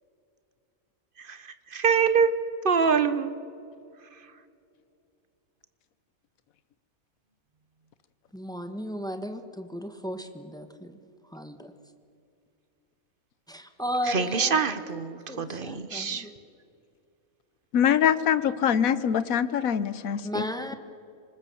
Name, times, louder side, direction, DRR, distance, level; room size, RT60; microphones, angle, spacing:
voice 1, 1.2-2.3 2.6-3.3 14.1-16.3, right 6 dB, 40° right, 12 dB, 1.1 m, -25 dB
voice 2, 8.3-11.0 11.3-11.7 13.5-14.7 15.3-16.4 20.2-20.7, equal, 5° left, 7 dB, 1.2 m, -35 dB
voice 3, 17.7-20.4, left 8 dB, 75° left, 15 dB, 1.3 m, -24 dB
25.5 x 20.5 x 7.0 m, 2.5 s
omnidirectional pair, 1.5 m